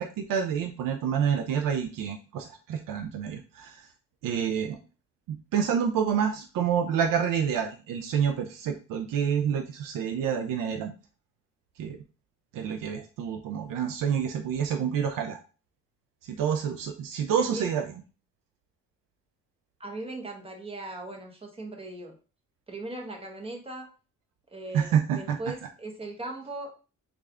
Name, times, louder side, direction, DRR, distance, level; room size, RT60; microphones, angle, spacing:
voice 1, 0.0-3.9 4.2-4.8 5.3-10.9 11.8-12.0 12.5-15.4 16.2-18.0 24.7-25.6, right 8 dB, 85° right, 4 dB, 0.5 m, -28 dB
voice 2, 17.2-17.7 19.8-22.1 22.7-23.9 24.5-26.8, right 2 dB, 20° right, 1 dB, 1.0 m, -39 dB
3.2 x 2.5 x 3.4 m, 0.35 s
cardioid pair, 95°, 32 cm